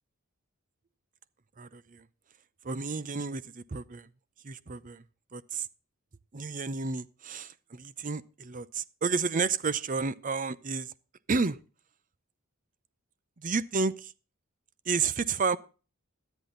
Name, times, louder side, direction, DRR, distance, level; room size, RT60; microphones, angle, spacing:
voice 1, 1.6-2.0 2.6-4.1 4.4-5.0 5.3-5.7 6.3-10.9 11.3-11.6 13.4-14.1 14.9-15.6, right 4 dB, 40° right, 0.7 m, -31 dB
13.0 x 10.0 x 3.9 m
head